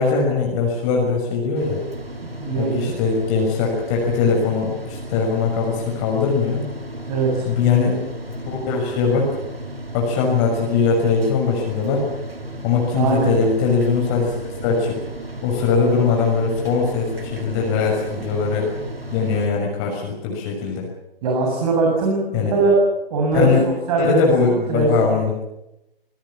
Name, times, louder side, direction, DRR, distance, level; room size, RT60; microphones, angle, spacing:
voice 1, 0.0-1.8 2.6-6.6 7.5-8.0 8.5-9.4 9.9-12.0 12.6-15.0 15.4-18.7 19.1-20.9 22.3-22.5 23.3-23.6 24.0-25.4, left 5 dB, 30° left, 0 dB, 6.3 m, -21 dB
sound 1, 1.5-19.5, equal, 80° right, 3.9 m, -34 dB
voice 2, 2.2-2.9 7.1-7.5 12.9-13.3 21.2-22.8 23.1-24.3 24.7-25.1, right 3 dB, 40° right, 0 dB, 7.9 m, -21 dB
27.5 x 19.5 x 7.4 m, 0.89 s
figure-of-eight pair, 125°, 29 cm